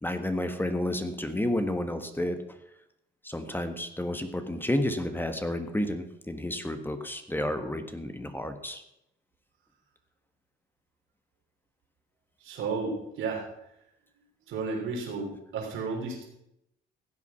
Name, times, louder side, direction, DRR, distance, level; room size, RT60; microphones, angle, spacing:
voice 1, 0.0-2.6 3.2-8.8, left 1 dB, 10° left, 8 dB, 1.5 m, -31 dB
voice 2, 12.4-13.5 14.5-16.2, right 4 dB, 85° right, -1 dB, 3.6 m, -33 dB
15.5 x 8.4 x 5.8 m, 0.81 s
cardioid pair, 90°, 20 cm